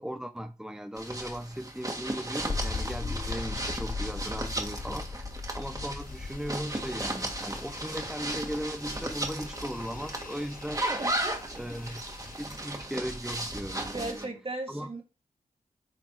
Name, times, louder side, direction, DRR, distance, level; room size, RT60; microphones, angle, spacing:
voice 1, 0.0-5.3 5.5-11.1 11.5-12.0 12.4-14.3 14.7-14.9, equal, 5° right, 0.6 m, -37 dB
sound 1, 1.0-14.3, right 1 dB, 25° right, 1.8 m, -36 dB
sound 2, 2.4-12.5, left 4 dB, 40° left, 0.6 m, -39 dB
sound 3, 6.0-12.7, left 4 dB, 75° left, 1.2 m, -49 dB
voice 2, 11.0-11.5 13.9-15.0, right 2 dB, 40° right, 2.6 m, -37 dB
8.6 x 4.1 x 4.8 m
wide cardioid pair, 70°, 14 cm